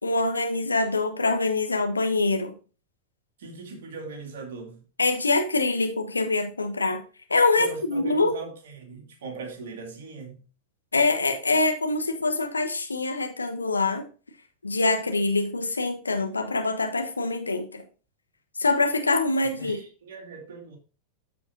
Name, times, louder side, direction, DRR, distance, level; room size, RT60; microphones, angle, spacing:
voice 1, 0.0-2.5 5.0-7.0 7.3-8.3 10.9-14.0 14.6-17.8 18.6-19.8, left 3 dB, 80° left, 1.2 m, -24 dB
voice 2, 3.4-4.8 7.6-10.4 19.4-20.8, right 4 dB, 60° right, 2.3 m, -40 dB
13.0 x 5.0 x 2.7 m
figure-of-eight pair, 90°, 0 cm